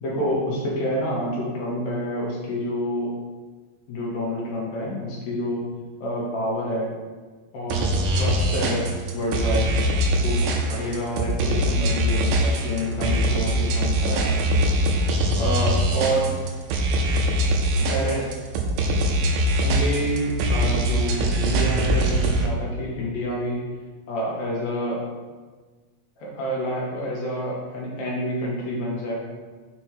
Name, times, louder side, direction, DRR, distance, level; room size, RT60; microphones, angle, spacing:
voice 1, 0.0-3.1 3.9-5.6 6.0-7.0 7.5-9.7 10.2-10.4 10.7-14.3 15.3-16.3 17.8-18.2 19.6-23.6 24.1-25.0 26.2-29.2, equal, 60° left, -4 dB, 2.3 m, -28 dB
sound 1, 7.7-22.5, right 1 dB, 85° right, 2.5 m, -22 dB
6.1 x 5.3 x 4.5 m, 1.4 s
omnidirectional pair, 4.0 m